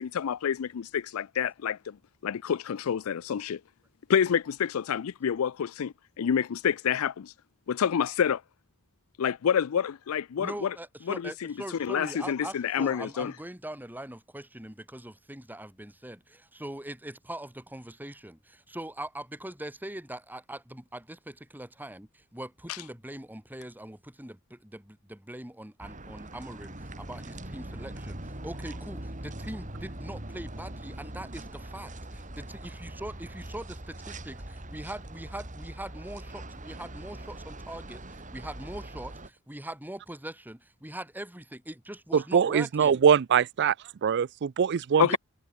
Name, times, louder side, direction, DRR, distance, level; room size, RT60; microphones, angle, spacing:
voice 1, 0.0-2.0 2.2-3.6 4.1-7.3 7.7-8.4 9.2-10.7 11.1-11.5 11.8-13.3 45.0-45.2, left 8 dB, 90° left, 0.4 m, -28 dB
voice 2, 10.4-33.7 34.2-43.0 45.1-45.2, right 1 dB, 10° right, 3.3 m, -42 dB
sound 1, 25.8-39.3, right 1 dB, 35° right, 5.2 m, -42 dB
voice 3, 42.1-43.7 44.0-45.2, right 7 dB, 55° right, 0.4 m, -23 dB
head